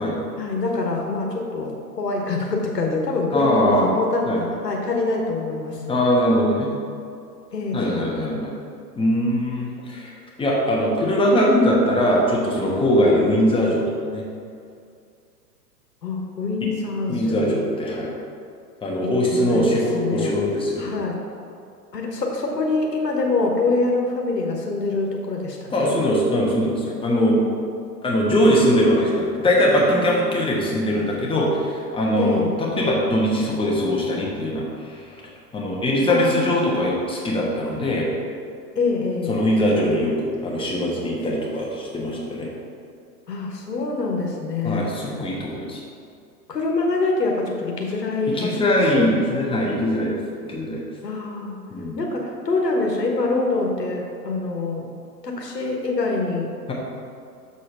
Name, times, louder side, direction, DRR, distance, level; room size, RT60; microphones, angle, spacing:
voice 1, 0.4-6.0 7.5-8.1 16.0-17.6 19.0-20.4 20.8-21.2 21.9-25.6 25.8-26.0 32.2-32.5 36.1-36.8 38.7-39.4 43.3-44.9 46.5-49.2 51.0-51.6 52.0-54.9 55.2-56.5, left 3 dB, 85° left, 0 dB, 1.2 m, -25 dB
voice 2, 3.3-3.9 4.3-4.4 5.9-6.7 7.7-8.5 8.9-13.8 14.1-14.2 16.6-16.7 17.1-18.1 18.8-20.9 25.7-27.4 28.0-35.0 35.5-38.1 39.3-42.5 44.6-45.8 48.3-50.2 50.5-50.8 51.7-52.0, equal, 10° left, -3 dB, 1.2 m, -21 dB
6.8 x 4.2 x 5.4 m, 2.4 s
figure-of-eight pair, 105°, 47 cm